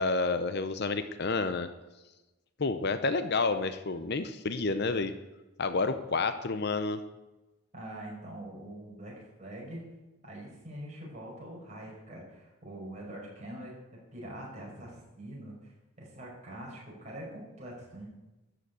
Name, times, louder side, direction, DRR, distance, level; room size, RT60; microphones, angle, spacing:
voice 1, 0.0-1.7 2.6-5.1 5.6-7.0, left 3 dB, 50° left, 10 dB, 0.7 m, -29 dB
voice 2, 7.7-9.8 10.2-13.8 14.1-18.1, right 1 dB, 35° right, -3 dB, 5.9 m, -44 dB
13.0 x 8.0 x 8.0 m, 1.1 s
head